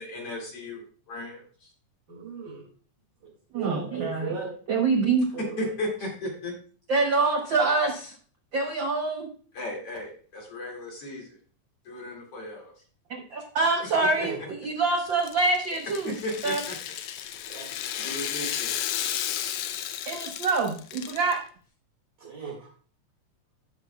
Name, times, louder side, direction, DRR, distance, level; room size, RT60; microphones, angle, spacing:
voice 1, 0.0-1.7 5.6-6.5 9.5-11.4 11.8-12.7 16.2-16.8 17.4-17.5 18.0-18.8, left 1 dB, 50° left, -2 dB, 3.0 m, -35 dB
voice 2, 2.1-2.6 3.5-4.5 5.3-5.5 14.2-14.4 17.5-17.7 18.0-18.1 22.2-22.7, right 5 dB, 40° right, -3 dB, 2.4 m, -37 dB
voice 3, 3.5-4.3 4.7-5.3 6.9-8.1 8.5-9.3 13.1-16.0 16.4-16.6 20.1-21.4, right 3 dB, 75° right, 2 dB, 1.0 m, -25 dB
Rattle (instrument), 15.1-21.3, left 11 dB, 80° left, 1.6 m, -33 dB
15.5 x 6.1 x 2.2 m, 0.42 s
omnidirectional pair, 3.5 m